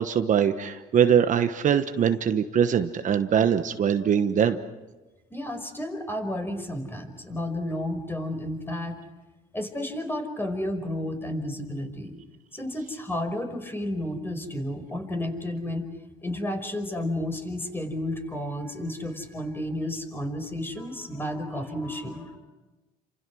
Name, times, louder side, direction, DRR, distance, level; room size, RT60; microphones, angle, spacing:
voice 1, 0.0-4.6, right 8 dB, 50° right, 8 dB, 1.2 m, -22 dB
voice 2, 5.3-9.0 9.5-12.2 12.5-15.9 16.2-22.4, left 1 dB, 15° left, 6 dB, 5.3 m, -32 dB
29.5 x 27.0 x 6.3 m, 1.1 s
cardioid pair, 110°, 17 cm